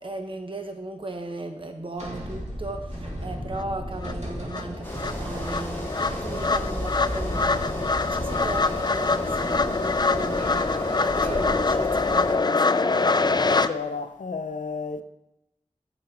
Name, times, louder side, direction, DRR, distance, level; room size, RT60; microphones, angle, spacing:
voice 1, 0.0-13.3, right 2 dB, 45° right, 1.1 m, -37 dB
sound 1, 2.0-11.7, equal, 65° right, 2.8 m, -35 dB
sound 2, 3.6-3.7 4.0-13.7, left 3 dB, 35° left, 0.3 m, -24 dB
sound 3, 4.8-12.4, left 1 dB, 15° left, 2.4 m, -35 dB
voice 2, 13.5-15.0, left 4 dB, 90° left, 0.5 m, -32 dB
9.6 x 6.9 x 3.8 m
wide cardioid pair, 50°, 13 cm